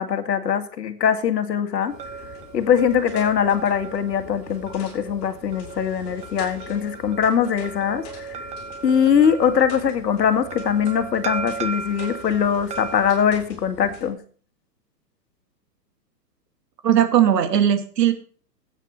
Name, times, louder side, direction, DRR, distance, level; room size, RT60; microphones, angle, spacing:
voice 1, 0.0-1.9 2.5-8.4 8.8-14.2, left 8 dB, 80° left, 9 dB, 2.1 m, -22 dB
sound 1, 1.8-13.2, right 5 dB, 15° right, 0.9 m, -36 dB
sound 2, 1.9-14.1, left 6 dB, 35° left, 7.6 m, -43 dB
voice 2, 16.8-18.1, right 10 dB, 75° right, 7 dB, 2.5 m, -18 dB
14.5 x 9.1 x 4.5 m, 0.43 s
hypercardioid pair, 135°, 49 cm